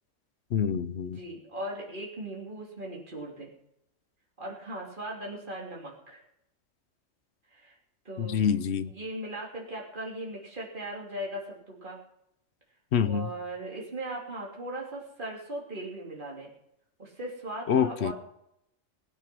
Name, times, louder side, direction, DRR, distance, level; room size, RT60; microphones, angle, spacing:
voice 1, 0.5-1.2 8.2-8.9 12.9-13.3 17.7-18.1, left 8 dB, 60° left, 13 dB, 1.0 m, -26 dB
voice 2, 1.1-3.5 4.4-6.2 7.5-7.7 8.0-8.5 8.8-12.0 13.0-16.5 17.0-18.1, right 1 dB, 40° right, -3 dB, 3.4 m, -38 dB
19.0 x 9.3 x 6.1 m, 0.78 s
omnidirectional pair, 1.3 m